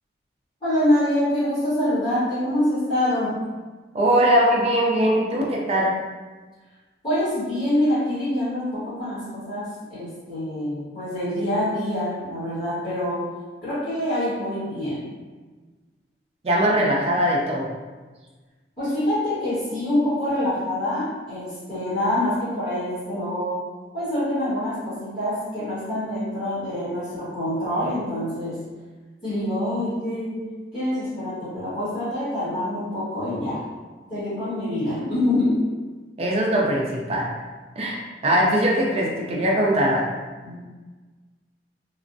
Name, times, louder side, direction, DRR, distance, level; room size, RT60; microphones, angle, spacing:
voice 1, 0.6-3.4 7.0-13.3 13.6-15.1 18.8-23.6 23.9-28.7 29.2-33.6 34.1-35.7 40.4-40.6, left 1 dB, 25° left, -17 dB, 1.3 m, -25 dB
voice 2, 3.9-6.0 16.4-17.7 36.2-37.3 37.8-40.1, right 1 dB, 35° right, -2 dB, 0.4 m, -21 dB
3.3 x 2.0 x 2.5 m, 1.3 s
head